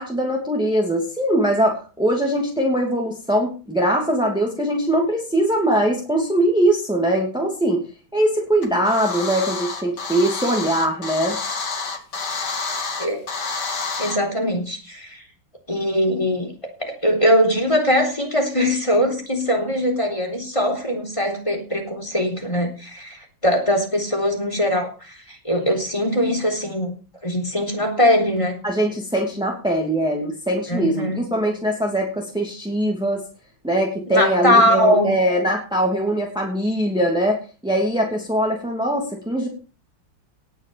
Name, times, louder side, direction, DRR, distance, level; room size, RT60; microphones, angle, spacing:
voice 1, 0.0-7.8 8.1-11.3 28.6-33.2 33.6-39.5, right 1 dB, ahead, 0 dB, 2.7 m, -21 dB
sound 1, 8.6-14.2, left 4 dB, 55° left, 2.7 m, -28 dB
voice 2, 14.0-15.2 15.7-16.5 16.8-26.9 27.2-28.6 30.7-31.2 34.1-35.1, equal, 15° left, 3 dB, 3.8 m, -21 dB
19.0 x 6.4 x 7.0 m, 0.36 s
omnidirectional pair, 2.1 m